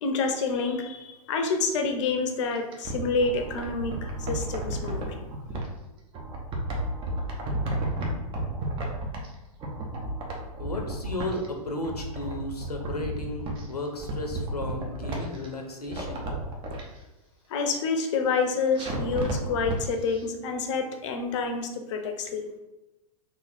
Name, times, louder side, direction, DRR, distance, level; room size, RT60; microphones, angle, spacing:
voice 1, 0.0-5.1 17.5-22.5, left 4 dB, 50° left, 5 dB, 0.7 m, -28 dB
sound 1, 2.5-5.7 6.1-9.3 9.6-11.5 11.8-13.6 14.0-15.5 15.8-16.8 18.7-19.8 20.1-20.2, right 1 dB, 25° right, 0.9 m, -32 dB
voice 2, 10.6-16.3, left 2 dB, 85° left, 2 dB, 0.9 m, -34 dB
3.8 x 2.8 x 4.1 m, 1.0 s
figure-of-eight pair, 100°, 19 cm